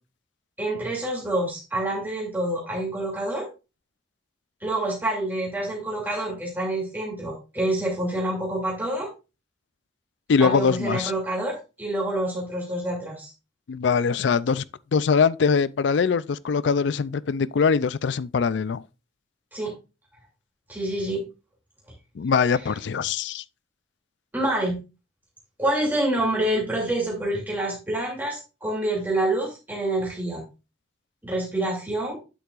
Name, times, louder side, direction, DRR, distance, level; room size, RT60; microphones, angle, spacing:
voice 1, 0.6-3.5 4.6-9.1 10.4-13.3 19.5-19.7 20.7-21.2 24.3-24.8 25.6-30.4 31.2-32.2, right 1 dB, 10° right, 2.7 m, -27 dB
voice 2, 10.3-11.1 13.7-14.6 14.9-18.8 22.2-23.4, left 5 dB, 70° left, 0.4 m, -22 dB
9.5 x 8.1 x 2.5 m
head